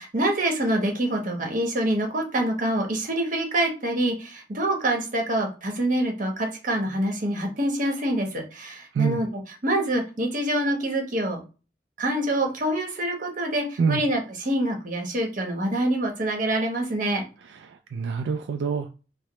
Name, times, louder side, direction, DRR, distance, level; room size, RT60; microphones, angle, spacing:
voice 1, 0.0-9.3 9.6-11.4 12.0-17.2, right 1 dB, 50° right, 1.0 m, -26 dB
voice 2, 17.6-18.9, right 6 dB, 85° right, 0.3 m, -26 dB
4.7 x 2.0 x 3.0 m
head